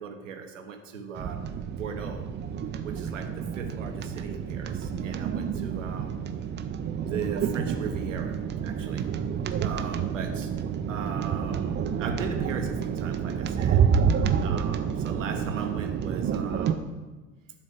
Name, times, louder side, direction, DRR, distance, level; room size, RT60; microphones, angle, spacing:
voice 1, 0.0-2.3 2.8-6.2 7.0-9.1 9.6-10.5 10.9-13.8 14.4-16.8, right 5 dB, 75° right, 5 dB, 1.0 m, -38 dB
sound 1, 1.1-16.7, right 7 dB, 30° right, 0.7 m, -29 dB
11.5 x 4.2 x 6.6 m, 1.2 s
figure-of-eight pair, 65°, 38 cm